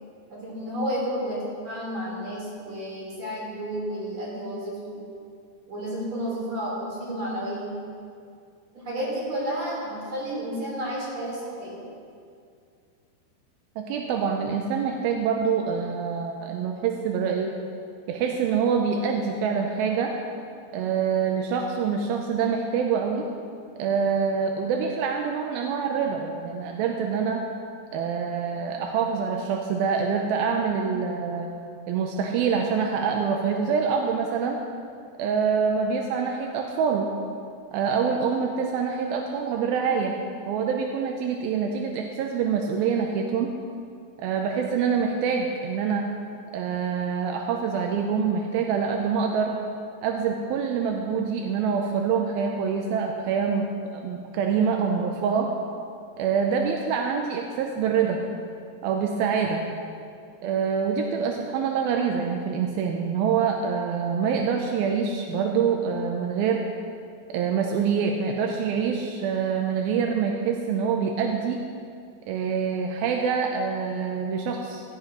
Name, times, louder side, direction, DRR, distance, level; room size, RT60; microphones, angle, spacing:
voice 1, 0.3-5.0 5.7-7.7 8.7-11.8, equal, 45° right, -6 dB, 5.0 m, -31 dB
voice 2, 13.8-17.5 18.1-20.1 20.7-23.3 23.8-27.4 27.9-31.5 31.9-34.6 35.2-37.1 37.7-40.1 40.5-43.5 44.2-46.1 46.5-49.5 50.0-55.5 56.2-58.3 58.8-59.6 60.4-66.6 67.3-71.6 72.3-74.8, right 6 dB, 85° right, 2 dB, 2.5 m, -25 dB
15.5 x 14.5 x 3.1 m, 2.4 s
omnidirectional pair, 4.3 m